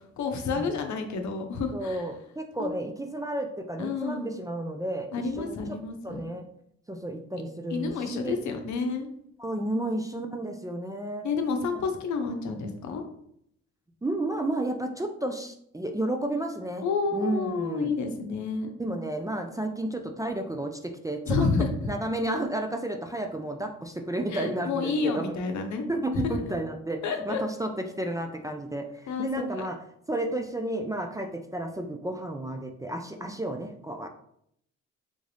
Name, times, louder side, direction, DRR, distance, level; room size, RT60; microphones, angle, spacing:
voice 1, 0.0-2.0 2.6-2.7 3.8-4.3 5.1-6.2 7.7-9.1 11.2-13.0 16.8-18.7 21.3-21.7 24.3-25.8 26.1-26.3 27.0-27.4 29.1-29.5 33.2-33.3, left 4 dB, 65° left, 5 dB, 0.7 m, -29 dB
voice 2, 1.7-5.1 5.4-5.6 6.0-6.4 6.9-8.6 9.4-11.2 11.7-11.8 14.0-16.8 17.1-17.9 18.8-21.5 21.8-25.4 25.9-29.8 30.1-34.1, right 1 dB, 10° right, 4 dB, 0.4 m, -32 dB
3.6 x 2.5 x 3.3 m, 0.71 s
supercardioid pair, 60°, 31 cm